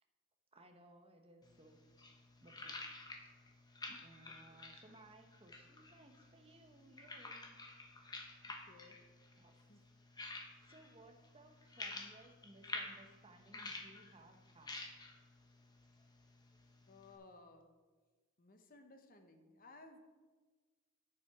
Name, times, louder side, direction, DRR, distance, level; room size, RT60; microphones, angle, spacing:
voice 1, 0.5-1.8 2.4-2.8 3.2-3.4 3.8-7.6 7.9-8.5 9.4-9.5 10.7-14.8, right 2 dB, 25° right, 4 dB, 1.0 m, -62 dB
sound 1, 1.4-17.2, left 2 dB, 20° left, 1.0 m, -51 dB
voice 2, 4.3-4.6 8.7-9.0 9.7-9.8 16.9-17.7 18.4-20.0, left 3 dB, 40° left, 6 dB, 1.0 m, -60 dB
10.0 x 7.1 x 4.8 m, 1.3 s
head